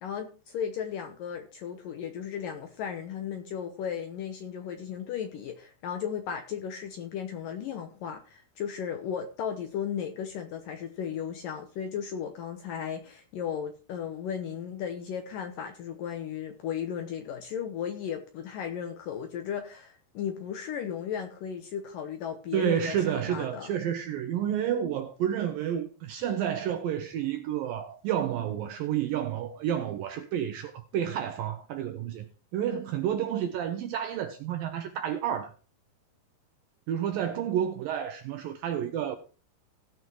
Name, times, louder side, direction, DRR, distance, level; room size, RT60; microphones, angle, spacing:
voice 1, 0.0-23.7, left 8 dB, 75° left, 2.1 m, -35 dB
voice 2, 22.5-32.3 32.5-35.5 36.9-39.2, right 10 dB, 75° right, 2.1 m, -30 dB
17.5 x 6.1 x 4.5 m
omnidirectional pair, 5.0 m